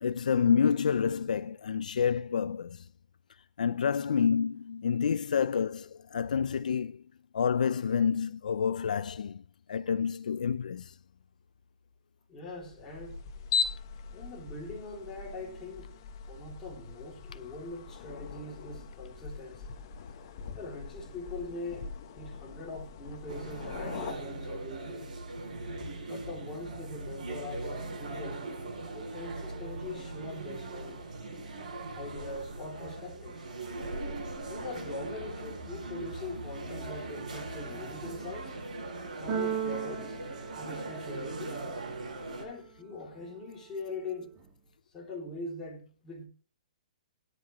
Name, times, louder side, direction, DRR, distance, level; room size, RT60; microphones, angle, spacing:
voice 1, 0.0-2.8 3.6-7.0 7.3-9.4 9.7-10.9 20.0-20.1, left 7 dB, 75° left, 0.6 m, -28 dB
voice 2, 12.3-13.2 14.1-15.9 16.3-19.8 20.6-21.9 22.1-25.2 26.1-28.5 28.9-31.1 31.9-33.4 34.4-38.6 39.2-40.2 40.5-41.6 42.4-44.3 44.9-46.3, left 2 dB, 10° left, 2.9 m, -42 dB
sound 1, 12.5-24.1, left 5 dB, 30° left, 1.1 m, -39 dB
sound 2, 23.3-42.4, right 2 dB, 70° right, 6.5 m, -40 dB
Keyboard (musical), 39.3-41.4, right 8 dB, 20° right, 1.7 m, -35 dB
17.5 x 11.0 x 3.1 m
hypercardioid pair, 180°, 4 cm